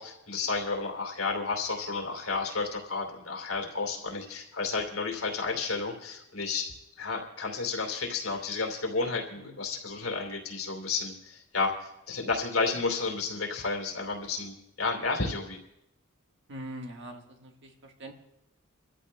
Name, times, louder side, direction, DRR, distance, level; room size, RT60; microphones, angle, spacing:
voice 1, 0.0-6.7 7.0-15.6, left 4 dB, 85° left, 2 dB, 2.8 m, -32 dB
voice 2, 9.4-9.7 16.5-18.1, right 1 dB, 60° right, 3 dB, 1.5 m, -43 dB
28.5 x 14.0 x 2.2 m, 0.87 s
head